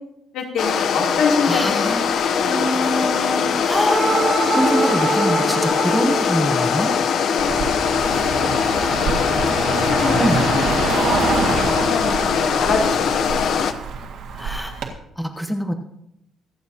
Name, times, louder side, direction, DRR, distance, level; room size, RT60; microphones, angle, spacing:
voice 1, 0.3-2.7 7.4-7.5 8.0-8.1 8.4-9.3 9.7-13.2, left 4 dB, 85° left, -1 dB, 3.0 m, -26 dB
sound 1, 0.6-13.7, left 6 dB, 55° left, 0.7 m, -21 dB
voice 2, 1.5-4.1 4.4-6.9 10.2-10.4 14.3-14.7 15.2-15.7, equal, ahead, 4 dB, 0.8 m, -24 dB
sound 2, 3.9-7.9, right 3 dB, 15° right, 2.2 m, -25 dB
Car passing by, 7.4-14.9, right 5 dB, 85° right, 1.8 m, -26 dB
24.5 x 8.6 x 2.8 m, 0.79 s
cardioid pair, 175°, 0 cm